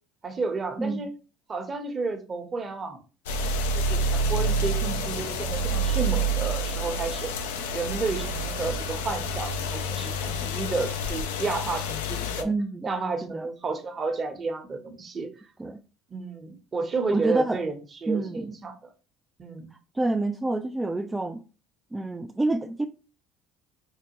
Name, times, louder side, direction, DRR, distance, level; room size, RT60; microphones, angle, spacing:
voice 1, 0.2-1.1 1.5-3.0 3.7-7.3 7.7-12.5 12.8-15.3 16.1-18.8 19.4-19.7, right 4 dB, 35° right, 0.8 m, -31 dB
sound 1, 3.3-12.4, right 1 dB, 90° left, 0.4 m, -28 dB
voice 2, 12.4-12.9 13.2-13.5 15.6-15.8 17.1-17.6 18.1-18.5 20.0-21.4 21.9-22.9, right 2 dB, 15° right, 0.3 m, -27 dB
4.6 x 2.2 x 2.9 m
hypercardioid pair, 70°, 0 cm